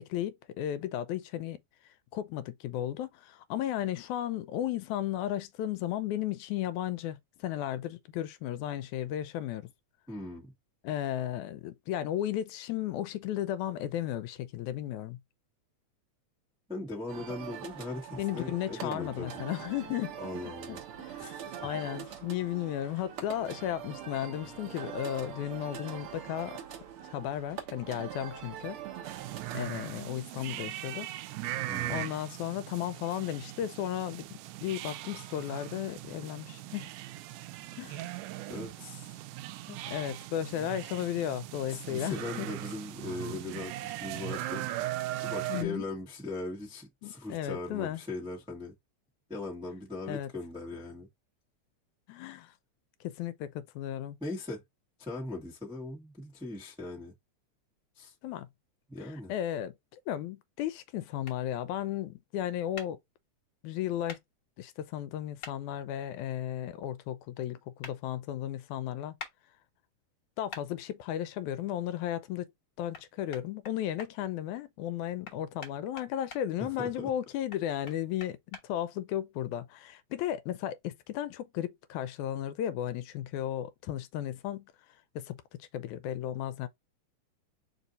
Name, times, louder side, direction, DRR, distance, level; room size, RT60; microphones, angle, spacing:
voice 1, 0.0-1.6 2.1-9.7 10.8-15.2 18.2-20.1 21.0-21.4 21.6-26.6 27.1-28.8 29.5-31.1 31.4-31.6 31.9-36.9 37.8-38.1 39.7-42.5 45.5-45.8 47.0-48.0 50.1-50.3 52.1-52.5 53.0-54.2 58.2-58.5 59.0-59.7 60.1-63.0 63.6-64.2 64.6-69.1 70.4-72.5 72.8-84.7 85.2-86.7, left 11 dB, 80° left, 1.9 m, -34 dB
voice 2, 10.1-10.5 16.7-19.3 20.2-20.8 21.2-21.7 22.0-22.1 31.7-32.0 38.5-39.1 41.7-44.7 45.2-48.7 49.3-51.1 54.2-54.6 55.0-57.1 58.0-58.1 58.9-59.3 76.6-77.1, left 2 dB, 5° right, 0.3 m, -39 dB
sound 1, 17.1-29.6, right 9 dB, 60° right, 1.5 m, -43 dB
sound 2, 29.0-45.6, right 15 dB, 90° right, 2.1 m, -39 dB
sound 3, 61.2-61.4 62.8-62.9 64.1-64.2 65.4-65.6 67.8-68.0 69.2-69.3 70.5-70.7 72.9-73.0 73.3-74.1 75.2-76.4 77.5-78.6, left 5 dB, 45° left, 1.6 m, -44 dB
4.8 x 2.6 x 4.1 m
omnidirectional pair, 3.5 m